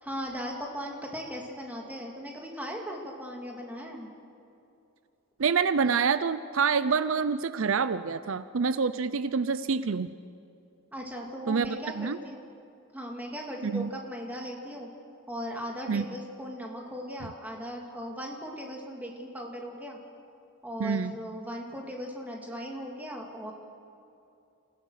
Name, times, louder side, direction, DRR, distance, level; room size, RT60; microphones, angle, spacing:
voice 1, 0.0-4.1 10.9-12.4 12.9-14.9 15.3-20.0 20.6-23.5, equal, 10° right, 0 dB, 2.5 m, -38 dB
voice 2, 5.4-10.1 11.5-12.2 13.6-13.9 15.9-16.1 20.8-21.2, right 5 dB, 70° right, 14 dB, 0.6 m, -27 dB
27.5 x 16.5 x 6.5 m, 2.7 s
head